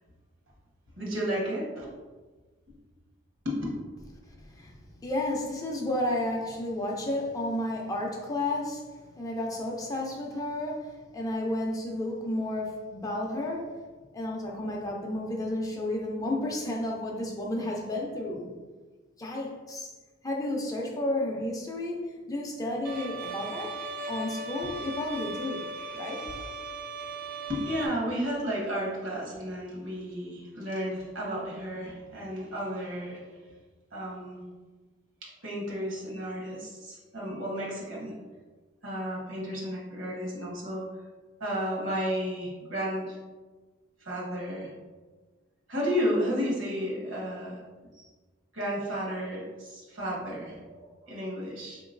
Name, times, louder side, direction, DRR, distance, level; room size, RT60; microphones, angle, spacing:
voice 1, 1.0-1.9 3.4-3.6 13.1-13.2 27.5-33.4 33.9-34.4 35.4-38.1 38.8-40.8 41.4-43.2 44.0-44.7 45.7-47.6 47.9-48.1 48.5-51.8, equal, 70° right, -4 dB, 1.3 m, -32 dB
voice 2, 4.4-4.7 5.0-13.8 14.1-18.5 19.2-19.9 20.2-23.8 24.1-26.2, left 1 dB, 20° left, -1 dB, 0.4 m, -32 dB
Bowed string instrument, 22.8-27.9, right 2 dB, 45° right, 0.3 m, -38 dB
4.2 x 2.9 x 2.5 m, 1.3 s
head